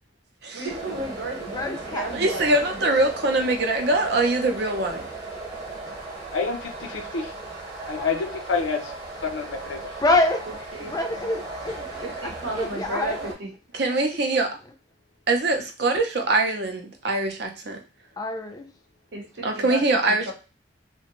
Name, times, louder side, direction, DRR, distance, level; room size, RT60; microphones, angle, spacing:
voice 1, 0.5-2.8 10.7-10.9 12.0-13.5 19.1-20.3, right 2 dB, 80° right, 0 dB, 0.9 m, -34 dB
sound 1, 0.7-13.3, right 2 dB, 20° right, 0.9 m, -37 dB
voice 2, 1.5-2.5 10.0-10.5 10.8-12.3 12.6-13.3 18.2-18.7, left 2 dB, 20° left, 4 dB, 0.4 m, -26 dB
voice 3, 2.1-5.0 13.7-14.5 15.3-17.8 19.4-20.3, right 2 dB, 60° right, 4 dB, 0.5 m, -23 dB
voice 4, 6.3-7.3 7.8-8.9 9.2-9.8, left 5 dB, 85° left, 4 dB, 0.6 m, -28 dB
2.5 x 2.2 x 2.9 m, 0.32 s
head